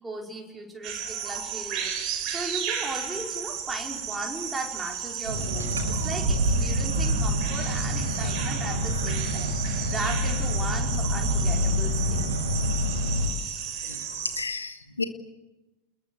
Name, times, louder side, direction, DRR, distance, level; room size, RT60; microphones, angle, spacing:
voice 1, 0.0-9.6 9.9-12.3, right 2 dB, 10° right, 1 dB, 5.1 m, -37 dB
sound 1, 0.8-14.4, right 8 dB, 40° right, 4.8 m, -34 dB
sound 2, 5.3-13.3, equal, 70° right, 5.1 m, -27 dB
voice 2, 13.9-15.0, left 4 dB, 75° left, 9 dB, 2.0 m, -33 dB
29.5 x 21.0 x 8.1 m, 1.1 s
figure-of-eight pair, 90°, 0 cm